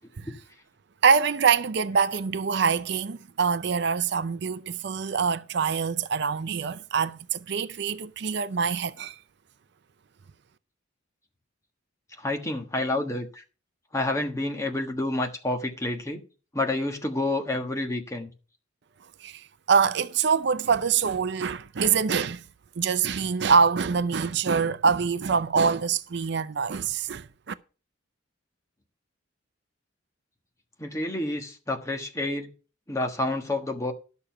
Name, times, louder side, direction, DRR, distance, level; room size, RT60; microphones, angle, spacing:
voice 1, 1.0-9.2 19.2-22.4 22.8-27.5, right 6 dB, 55° right, 0.5 m, -25 dB
voice 2, 12.2-13.4 13.9-16.2 16.5-18.3 30.8-32.5 32.9-33.9, left 2 dB, 15° left, 1.4 m, -29 dB
11.5 x 6.8 x 5.8 m
head